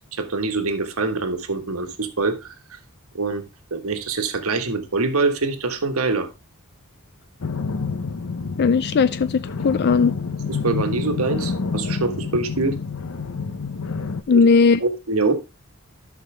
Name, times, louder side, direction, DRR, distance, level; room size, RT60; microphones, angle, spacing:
voice 1, 0.0-2.8 3.1-3.4 3.7-6.3 10.5-12.8 14.3-14.4 14.8-15.3, right 3 dB, 75° right, 1.4 m, -24 dB
sound 1, 7.4-14.2, left 4 dB, 80° left, 0.8 m, -28 dB
voice 2, 8.6-10.1 14.3-14.8, left 5 dB, 50° left, 0.4 m, -17 dB
12.5 x 6.0 x 3.3 m
head